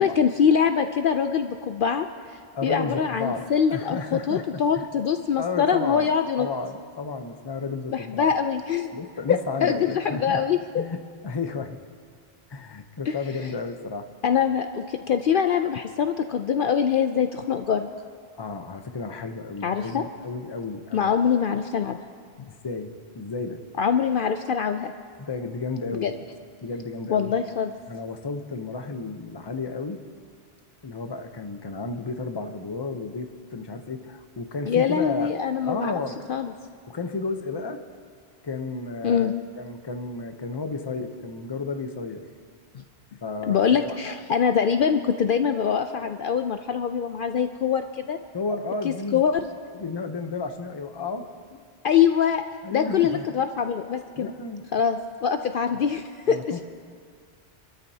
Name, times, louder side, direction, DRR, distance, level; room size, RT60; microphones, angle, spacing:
voice 1, 0.0-6.5 7.9-8.9 9.3-10.6 13.1-13.2 14.2-17.9 19.6-20.0 20.9-22.0 23.8-24.9 25.9-26.1 27.1-27.7 34.7-35.9 36.3-36.5 39.0-39.3 43.5-48.2 48.8-49.4 51.8-52.4 52.7-54.3 54.7-56.4, left 7 dB, 60° left, 7 dB, 0.7 m, -23 dB
voice 2, 2.5-4.9 5.4-6.1 6.4-8.3 8.9-10.4 10.8-11.8 12.5-14.1 18.4-21.2 22.5-23.6 25.2-26.1 26.6-27.3 27.9-30.0 30.8-35.3 35.6-36.2 36.9-37.8 38.4-42.3 43.2-44.0 48.3-49.3 49.7-51.3 52.6-53.3 54.2-54.7 55.7-55.9 56.3-56.6, left 4 dB, 25° left, 7 dB, 0.7 m, -32 dB
26.0 x 13.5 x 2.8 m, 2.1 s
omnidirectional pair, 1.1 m